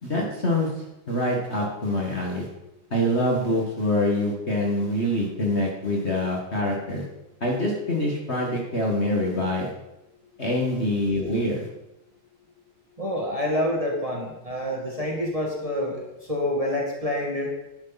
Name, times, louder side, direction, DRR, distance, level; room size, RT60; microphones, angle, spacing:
voice 1, 0.0-2.5 2.9-7.0 7.4-9.7 10.4-11.7, left 1 dB, 35° left, -2 dB, 1.9 m, -25 dB
voice 2, 13.0-16.0 16.3-17.5, left 1 dB, 20° right, -2 dB, 2.1 m, -27 dB
11.5 x 11.0 x 4.1 m, 0.90 s
omnidirectional pair, 2.2 m